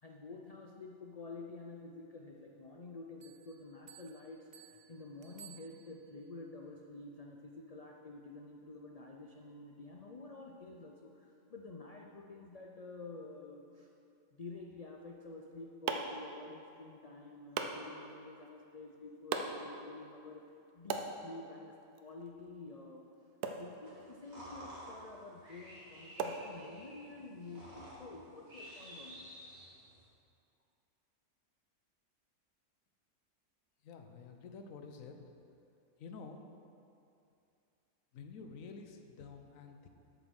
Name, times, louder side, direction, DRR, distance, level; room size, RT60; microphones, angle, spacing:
voice 1, 0.0-13.9 14.3-23.0 23.5-29.3, left 3 dB, 85° left, 0 dB, 0.3 m, -50 dB
Bell, 3.2-6.3, right 11 dB, 65° right, 0.9 m, -58 dB
sound 1, 15.2-27.1, right 5 dB, 85° right, 1.2 m, -44 dB
sound 2, 23.8-30.1, equal, 45° right, 2.4 m, -52 dB
voice 2, 33.8-35.3 36.0-36.4 38.1-39.9, left 5 dB, 65° left, 5 dB, 1.1 m, -49 dB
8.1 x 6.8 x 6.3 m, 2.6 s
omnidirectional pair, 1.6 m